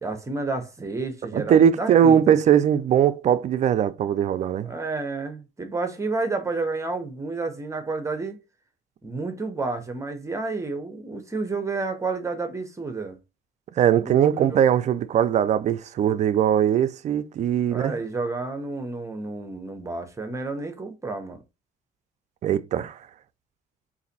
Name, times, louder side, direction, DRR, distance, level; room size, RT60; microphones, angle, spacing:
voice 1, 0.0-2.4 4.6-8.4 9.0-13.2 14.0-14.6 17.7-21.4, right 3 dB, 20° right, 0.8 m, -30 dB
voice 2, 1.3-4.7 13.8-17.9 22.4-23.0, right 9 dB, 45° right, 0.4 m, -20 dB
4.0 x 2.6 x 4.0 m
cardioid pair, 135°, 17 cm